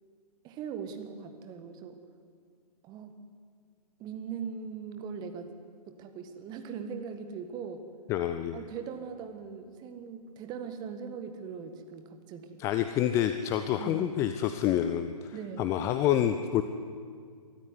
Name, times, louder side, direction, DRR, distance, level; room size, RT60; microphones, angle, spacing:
voice 1, 0.4-2.0 2.8-3.1 4.0-5.5 5.9-7.8 8.5-12.6 13.8-14.1 15.3-15.7, right 6 dB, 20° right, 8 dB, 1.6 m, -40 dB
voice 2, 8.1-8.6 12.6-16.6, left 11 dB, 15° left, 10 dB, 0.5 m, -28 dB
24.0 x 14.0 x 9.7 m, 2.2 s
figure-of-eight pair, 130°, 21 cm